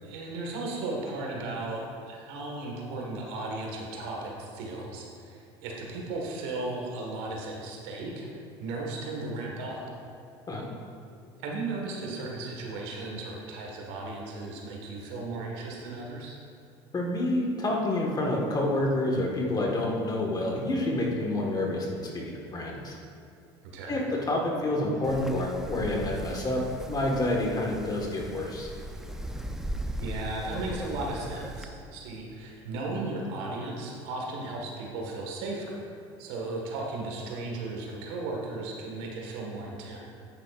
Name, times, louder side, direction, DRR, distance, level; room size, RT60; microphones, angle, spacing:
voice 1, 0.0-8.3 8.6-9.8 11.4-16.3 23.6-24.0 30.0-35.8 36.2-40.0, right 2 dB, 80° right, -1 dB, 1.6 m, -35 dB
voice 2, 16.9-23.0 23.9-28.7, left 1 dB, 30° left, -1 dB, 1.6 m, -28 dB
Wind, 25.0-31.6, right 1 dB, 5° right, 0.5 m, -38 dB
9.4 x 8.6 x 2.5 m, 2.4 s
supercardioid pair, 95°, 13 cm